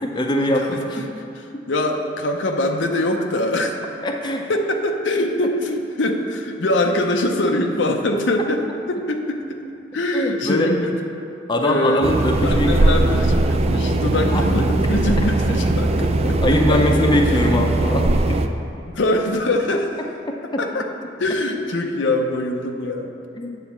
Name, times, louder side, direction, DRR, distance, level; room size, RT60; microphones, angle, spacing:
voice 1, 0.0-0.9 4.0-4.5 10.1-10.7 11.5-13.0 14.3-14.4 16.2-18.4 20.3-20.6 23.4-23.5, left 1 dB, 25° left, 1 dB, 0.6 m, -22 dB
voice 2, 0.9-3.7 4.5-9.6 9.9-10.9 11.6-12.1 12.4-16.8 18.9-20.0 20.6-20.9 21.2-23.1, left 1 dB, 75° left, 3 dB, 0.7 m, -23 dB
sound 1, 12.0-18.5, right 2 dB, 35° right, 0.4 m, -19 dB
9.1 x 4.1 x 7.2 m, 2.6 s
head